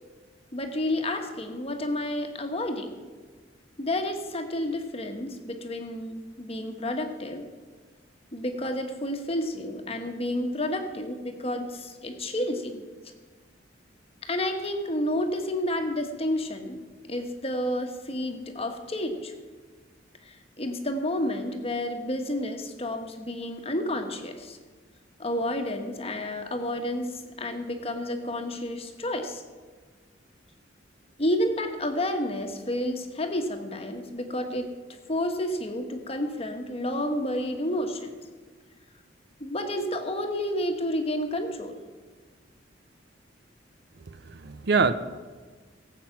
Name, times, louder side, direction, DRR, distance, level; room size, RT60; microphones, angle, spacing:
voice 1, 0.5-3.0 3.8-7.5 8.3-12.8 14.2-16.8 17.1-19.3 20.2-24.6 25.2-29.4 31.2-34.7 35.1-38.1 39.4-41.8, left 1 dB, 30° left, 5 dB, 1.3 m, -30 dB
voice 2, 44.1-44.9, right 4 dB, 60° right, 12 dB, 0.7 m, -25 dB
17.5 x 8.2 x 5.9 m, 1.4 s
head